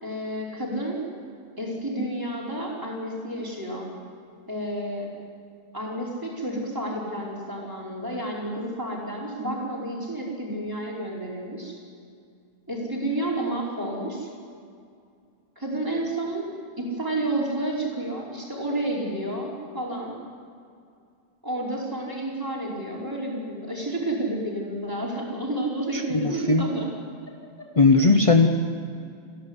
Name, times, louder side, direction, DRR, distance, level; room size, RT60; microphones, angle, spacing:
voice 1, 0.0-1.0 1.6-3.9 4.5-5.1 5.7-11.8 12.7-14.3 15.6-16.5 16.8-20.1 21.4-26.9, right 1 dB, 10° right, -4 dB, 5.0 m, -30 dB
voice 2, 25.9-26.6 27.8-28.5, left 4 dB, 35° left, 5 dB, 0.5 m, -18 dB
29.0 x 11.0 x 9.9 m, 2.3 s
omnidirectional pair, 1.7 m